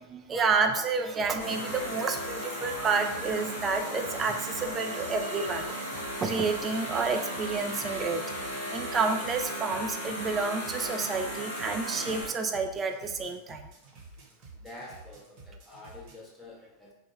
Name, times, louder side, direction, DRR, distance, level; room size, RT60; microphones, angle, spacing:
voice 1, 0.0-5.8 6.2-8.2 8.7-13.7, right 4 dB, 20° right, 4 dB, 0.3 m, -30 dB
sound 1, 1.2-16.2, right 2 dB, 40° right, 0.9 m, -51 dB
sound 2, 1.4-12.2, equal, 70° left, 1.0 m, -36 dB
voice 2, 14.6-16.9, left 2 dB, 10° left, -4 dB, 0.7 m, -47 dB
3.1 x 2.1 x 3.1 m, 0.91 s
figure-of-eight pair, 90°, 0 cm